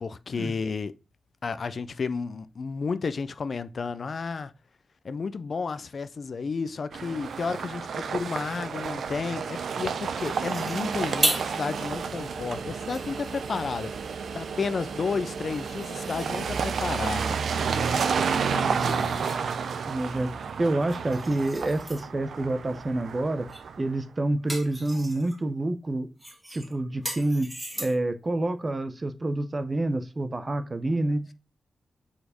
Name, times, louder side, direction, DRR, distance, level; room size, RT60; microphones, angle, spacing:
voice 1, 0.0-0.9 1.4-4.5 5.0-13.9 14.3-17.4 18.1-19.4, left 5 dB, 55° left, 0.5 m, -32 dB
sound 1, 6.9-23.9, right 6 dB, 75° right, 0.7 m, -31 dB
sound 2, 10.2-11.6 12.1-12.2 12.7-14.0 15.5-16.7 18.3-19.5 20.7-22.1 23.5-23.7 24.1-25.4 26.2-28.2, right 1 dB, 10° right, 2.2 m, -36 dB
voice 2, 19.9-20.3 20.6-23.5 23.8-26.1 26.5-27.5 27.8-31.3, right 2 dB, 35° right, 0.8 m, -28 dB
4.9 x 4.3 x 5.1 m
cardioid pair, 70°, 0 cm